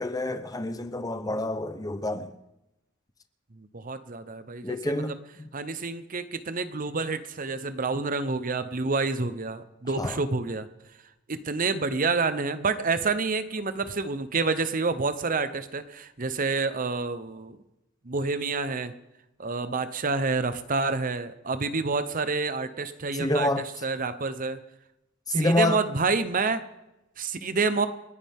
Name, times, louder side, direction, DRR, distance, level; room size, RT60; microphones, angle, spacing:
voice 1, 0.0-2.3 4.6-5.1 5.4-5.5 10.0-10.2 23.1-23.7 25.3-25.8, left 2 dB, 20° left, 0.8 m, -27 dB
voice 2, 3.6-5.2 5.5-10.7 11.3-17.6 18.0-18.9 19.4-24.6 25.4-26.7 27.2-27.9, right 4 dB, 45° right, 0.9 m, -28 dB
29.5 x 9.9 x 3.6 m
head